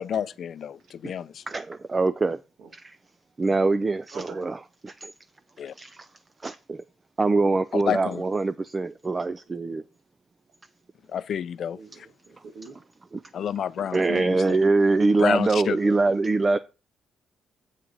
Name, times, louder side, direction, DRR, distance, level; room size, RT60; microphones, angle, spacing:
voice 1, 0.0-1.4 5.6-5.7 7.7-8.2 11.1-11.8 13.3-14.6 15.2-15.8, left 9 dB, 60° left, 0.5 m, -29 dB
voice 2, 1.5-2.4 2.7-3.0 3.4-4.6 5.0-5.1 5.8-6.0 6.4-6.8 7.2-9.8 13.1-13.2 13.8-16.6, right 3 dB, 25° right, 0.4 m, -23 dB
voice 3, 2.1-2.7 4.1-4.5 9.5-9.9 11.7-12.8, right 4 dB, 70° right, 1.6 m, -45 dB
7.5 x 4.8 x 5.3 m
cardioid pair, 90°, 0 cm